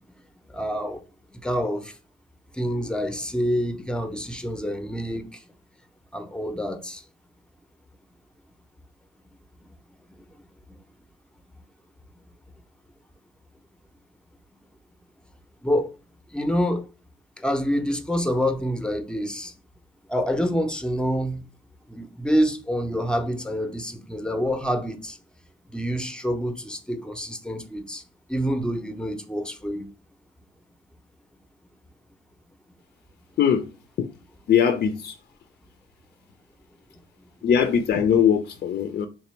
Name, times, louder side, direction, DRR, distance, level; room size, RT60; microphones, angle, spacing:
voice 1, 0.5-1.0 1.3-2.0 2.5-5.4 6.1-7.0 15.6-15.9 16.3-16.8 17.4-19.5 20.1-21.4 21.9-25.2 25.7-28.0 28.3-29.9 37.2-37.3, equal, 5° left, 0.6 m, -27 dB
voice 2, 34.5-35.1 37.4-39.1, left 8 dB, 50° left, 0.4 m, -20 dB
3.6 x 3.0 x 3.1 m
cardioid pair, 90°, 20 cm